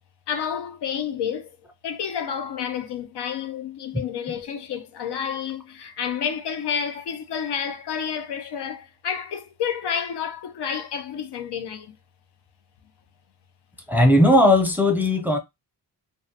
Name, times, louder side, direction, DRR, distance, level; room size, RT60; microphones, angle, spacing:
voice 1, 0.3-1.5 1.8-12.0, left 7 dB, 65° left, 0.6 m, -30 dB
voice 2, 13.9-15.4, left 1 dB, 5° right, 0.5 m, -17 dB
2.3 x 2.1 x 2.7 m
cardioid pair, 75°, 43 cm